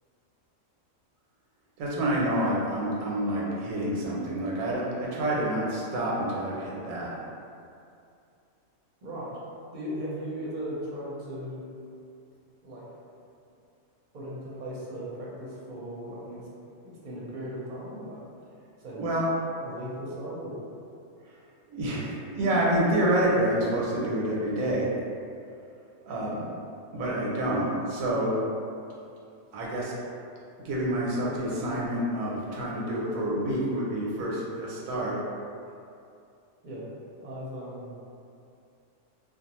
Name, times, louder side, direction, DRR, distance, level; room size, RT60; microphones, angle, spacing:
voice 1, 1.8-7.1 19.0-19.2 21.7-24.9 26.0-26.4 26.9-28.4 29.5-30.0 30.6-35.2, right 1 dB, 85° right, -5 dB, 1.0 m, -28 dB
voice 2, 9.0-9.4 9.7-11.6 12.6-12.9 14.1-16.4 17.0-18.2 18.8-19.0 19.6-20.6 36.6-36.9 37.2-38.0, equal, 45° right, -7 dB, 0.7 m, -37 dB
2.5 x 2.3 x 2.9 m, 2.5 s
omnidirectional pair, 1.4 m